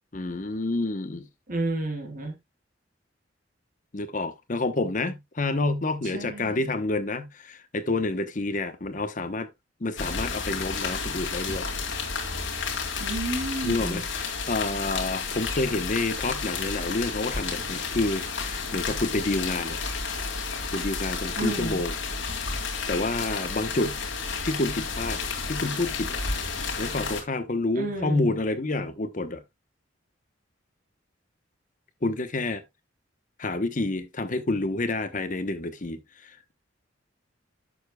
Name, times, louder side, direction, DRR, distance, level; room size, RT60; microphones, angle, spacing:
voice 1, 0.1-1.3 3.9-9.5 9.8-11.7 13.6-19.8 20.7-21.9 22.9-23.9 24.4-26.2 26.8-29.4 32.0-32.6 33.4-36.5, left 2 dB, 40° left, 0.9 m, -29 dB
voice 2, 1.5-2.3 6.0-6.7 13.0-14.0 21.4-21.8 27.7-28.3, right 2 dB, 45° right, 2.8 m, -31 dB
sound 1, 10.0-27.2, left 4 dB, 70° left, 2.3 m, -31 dB
11.0 x 6.9 x 2.2 m
head